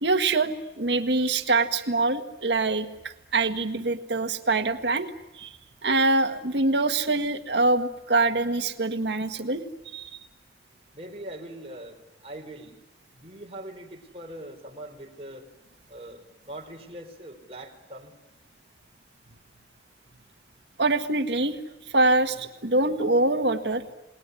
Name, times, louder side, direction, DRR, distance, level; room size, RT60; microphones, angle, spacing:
voice 1, 0.0-2.9 3.3-5.1 5.4-5.5 5.8-9.6 9.9-10.1 20.8-21.6 21.9-23.8, right 2 dB, 85° right, 7 dB, 1.8 m, -24 dB
voice 2, 10.9-12.8 13.1-15.5 15.9-18.1, right 1 dB, 35° right, 2 dB, 4.5 m, -42 dB
29.5 x 20.0 x 9.9 m, 0.99 s
head